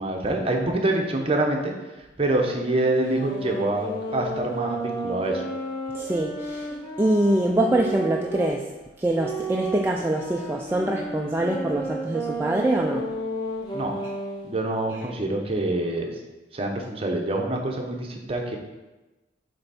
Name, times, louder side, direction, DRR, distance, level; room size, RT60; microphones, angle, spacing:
voice 1, 0.0-1.7 2.2-5.5 13.7-14.0 14.4-16.1 16.5-18.6, right 2 dB, 35° right, 2 dB, 0.8 m, -26 dB
sound 1, 3.0-8.5 9.1-14.5, right 2 dB, 25° left, 1.4 m, -32 dB
voice 2, 5.9-8.7 9.0-13.1 14.9-15.0, right 1 dB, 15° right, 0 dB, 0.3 m, -24 dB
8.0 x 3.4 x 4.2 m, 1.1 s
head